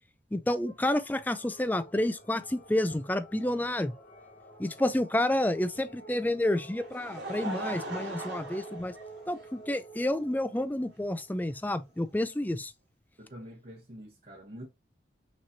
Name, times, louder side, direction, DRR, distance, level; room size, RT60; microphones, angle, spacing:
voice 1, 0.3-3.9 4.6-8.9 9.3-12.7, left 1 dB, 10° left, 0.4 m, -29 dB
sound 1, 0.6-12.4, right 2 dB, 55° left, 2.3 m, -50 dB
Laughter, 6.5-9.7 10.5-10.6 12.1-12.2, right 2 dB, 90° right, 2.4 m, -40 dB
voice 2, 13.2-14.7, equal, 45° right, 1.1 m, -46 dB
6.0 x 3.2 x 2.7 m
head